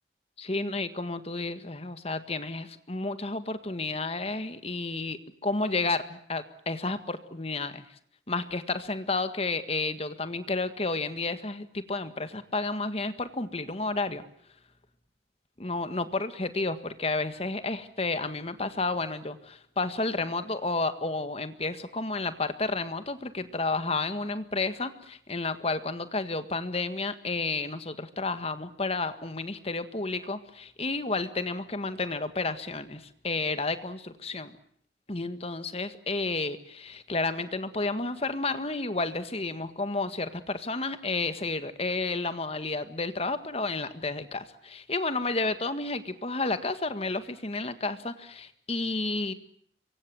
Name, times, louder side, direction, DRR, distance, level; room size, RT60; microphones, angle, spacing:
voice 1, 0.4-7.8 8.3-14.2 15.6-34.5 35.1-49.3, left 3 dB, 35° left, 11 dB, 1.7 m, -31 dB
27.0 x 23.5 x 7.7 m, 0.65 s
head